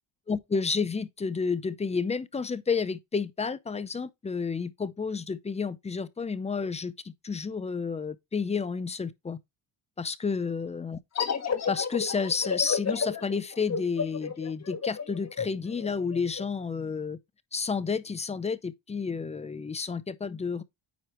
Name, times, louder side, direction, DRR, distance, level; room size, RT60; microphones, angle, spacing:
voice 1, 0.3-9.4 10.0-11.0 11.7-17.2 17.5-20.6, left 5 dB, 15° left, 0.4 m, -31 dB
sound 1, 11.2-16.5, left 6 dB, 35° left, 1.5 m, -31 dB
9.3 x 4.9 x 2.9 m
cardioid pair, 135°, 47 cm